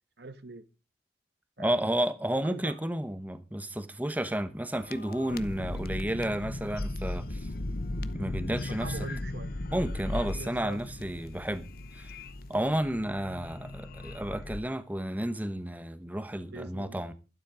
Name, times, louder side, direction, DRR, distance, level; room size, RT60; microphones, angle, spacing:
voice 1, 0.2-0.7 1.6-1.9 2.3-2.8 8.7-9.6 10.3-10.8 16.4-17.1, right 2 dB, 65° right, 1.2 m, -43 dB
voice 2, 1.6-7.5 8.1-9.0 9.7-11.6 11.9-12.1 12.5-17.1, right 1 dB, 10° right, 0.9 m, -32 dB
sound 1, 4.7-14.6, left 2 dB, 55° left, 0.9 m, -37 dB
12.5 x 12.0 x 5.0 m
head